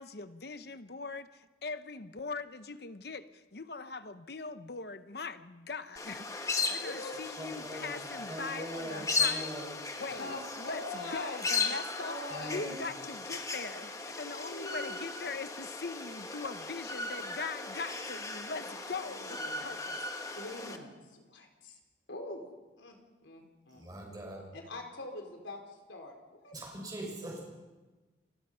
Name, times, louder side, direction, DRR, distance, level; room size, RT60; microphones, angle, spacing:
voice 1, 0.0-9.5 10.0-20.1, left 4 dB, 60° left, 11 dB, 0.8 m, -41 dB
sound 1, 6.0-20.8, left 4 dB, 15° left, 1.4 m, -37 dB
voice 2, 6.6-7.1 10.1-11.4 11.7-12.7 14.4-15.1 18.9-19.7 20.3-21.8 22.1-22.4 22.8-23.0 23.2-23.9 24.5-26.5, left 2 dB, 85° left, 2 dB, 4.5 m, -44 dB
voice 3, 7.4-8.0 8.3-10.0 12.3-12.8 23.7-24.5 26.5-27.5, right 1 dB, 20° right, -1 dB, 6.2 m, -42 dB
29.0 x 21.5 x 5.7 m, 1.2 s
head